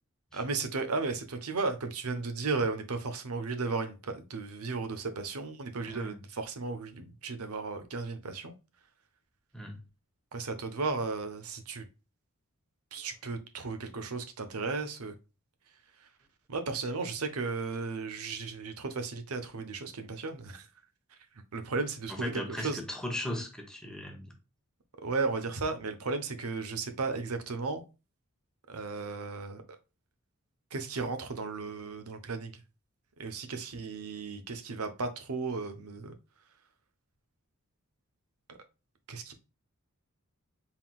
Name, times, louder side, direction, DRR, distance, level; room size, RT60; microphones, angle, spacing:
voice 1, 0.3-8.5 10.3-11.9 12.9-15.1 16.5-20.6 21.5-22.8 25.0-27.8 28.7-29.6 30.7-32.6 33.2-36.1 38.5-38.6 39.1-39.3, right 4 dB, 85° right, 0.8 m, -35 dB
voice 2, 5.9-6.2 9.5-9.8 22.2-24.3, left 1 dB, 5° left, 1.0 m, -37 dB
4.4 x 3.7 x 2.2 m
head